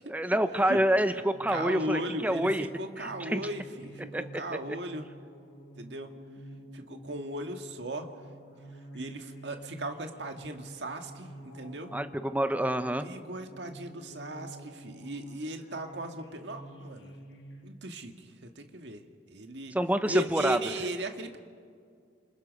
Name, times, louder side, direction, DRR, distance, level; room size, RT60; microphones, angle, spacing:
voice 1, 0.1-2.7 3.0-3.4 4.1-4.6 11.9-13.1 19.7-20.6, right 1 dB, 10° right, 10 dB, 0.9 m, -27 dB
sound 1, 1.3-17.6, right 1 dB, 80° left, 5.8 m, -49 dB
voice 2, 1.5-5.1 5.8-6.1 6.7-8.1 8.9-11.9 13.0-17.1 17.6-19.0 19.3-19.7 20.1-21.4, right 1 dB, 70° right, 5 dB, 1.9 m, -37 dB
29.0 x 27.5 x 5.4 m, 2.1 s
head